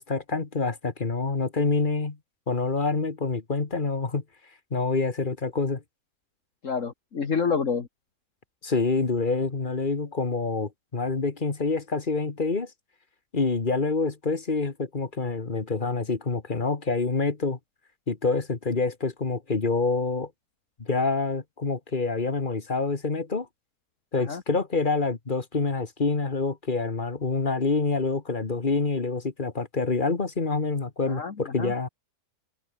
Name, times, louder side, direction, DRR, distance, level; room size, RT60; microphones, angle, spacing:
voice 1, 0.0-2.2 2.5-4.2 4.7-5.8 8.6-12.7 13.3-17.6 18.1-20.3 20.8-23.5 24.1-31.9, left 3 dB, 35° left, 1.8 m, -27 dB
voice 2, 6.6-7.9 24.1-24.4 31.1-31.7, left 5 dB, 60° left, 2.0 m, -28 dB
open air
omnidirectional pair, 1.6 m